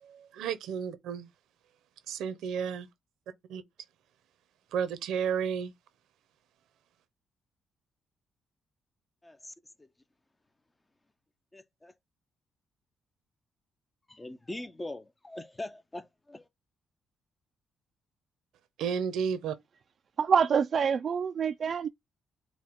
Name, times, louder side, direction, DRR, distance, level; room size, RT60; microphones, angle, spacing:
voice 1, 0.0-1.3 2.1-2.9 3.5-3.6 4.7-5.7 18.8-19.6, right 7 dB, 80° right, 0.7 m, -32 dB
voice 2, 9.2-9.9 11.5-11.9 14.1-16.5, left 1 dB, 15° left, 0.5 m, -42 dB
voice 3, 20.2-21.9, right 6 dB, 50° right, 0.3 m, -26 dB
4.7 x 2.3 x 3.5 m
cardioid pair, 90°, 0 cm